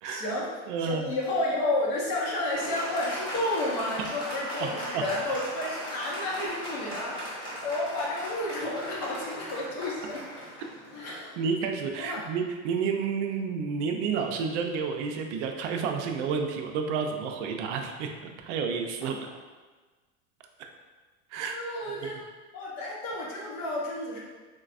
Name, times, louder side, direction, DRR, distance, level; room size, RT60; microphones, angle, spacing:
voice 1, 0.0-0.5 0.8-10.6 10.9-11.4 12.0-12.2 21.5-22.2 22.5-24.2, left 1 dB, 50° left, -4 dB, 0.9 m, -31 dB
voice 2, 0.7-1.1 4.6-5.0 11.4-19.3 20.6-20.7 21.3-21.6 22.0-22.1, right 5 dB, 70° right, 4 dB, 0.5 m, -30 dB
Applause, 2.5-11.5, equal, 15° left, 0.8 m, -38 dB
4.0 x 2.2 x 2.4 m, 1.3 s
supercardioid pair, 160°, 37 cm